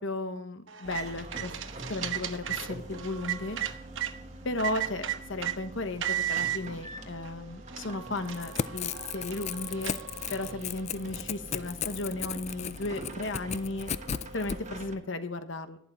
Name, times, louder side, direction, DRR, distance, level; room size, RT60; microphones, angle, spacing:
voice 1, 0.0-1.5 1.9-3.6 4.4-10.0 10.3-13.9 14.3-15.8, left 2 dB, 65° left, 9 dB, 1.1 m, -35 dB
sound 1, 0.7-4.1 4.6-5.6 6.0-6.6 7.3-7.4 7.7-10.5, right 11 dB, 70° right, 1.0 m, -35 dB
sound 2, 0.8-14.9, right 2 dB, 35° right, 1.4 m, -45 dB
Crackle / Tearing, 8.2-14.6, left 8 dB, 35° left, 0.4 m, -35 dB
11.5 x 11.0 x 4.4 m, 0.65 s
head